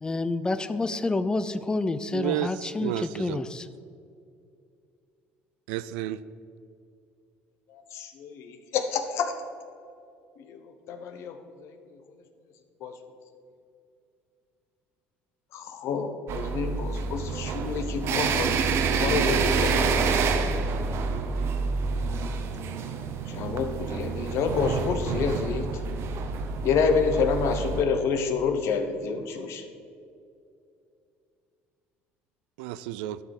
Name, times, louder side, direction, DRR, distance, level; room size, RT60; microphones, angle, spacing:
voice 1, 0.0-3.7, left 2 dB, 15° left, 13 dB, 0.5 m, -28 dB
voice 2, 2.1-3.4 5.7-6.2 32.6-33.2, right 12 dB, 90° right, 15 dB, 0.3 m, -31 dB
voice 3, 7.7-9.4 10.5-11.7 12.8-12.9 15.5-18.5 18.9-20.0 23.3-25.7 26.6-29.6, left 5 dB, 65° left, 7 dB, 1.0 m, -28 dB
sound 1, 16.3-27.8, right 4 dB, 60° right, 0.9 m, -28 dB
12.0 x 5.4 x 4.8 m, 2.5 s
supercardioid pair, 90°, 5 cm